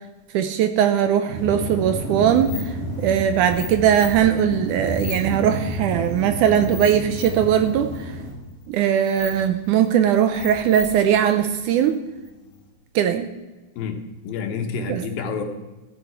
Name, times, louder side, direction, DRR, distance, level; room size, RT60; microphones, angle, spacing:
voice 1, 0.3-2.7 3.0-8.2 8.7-12.0 13.0-13.3 14.9-15.0, right 9 dB, 75° right, 9 dB, 1.9 m, -20 dB
sound 1, 1.3-8.3, right 1 dB, 60° right, 7.0 m, -30 dB
sound 2, 2.2-12.7, left 5 dB, 60° left, 2.7 m, -40 dB
voice 2, 13.8-15.4, left 5 dB, 80° left, 5 dB, 3.0 m, -29 dB
14.5 x 9.8 x 4.6 m, 1.1 s
omnidirectional pair, 4.1 m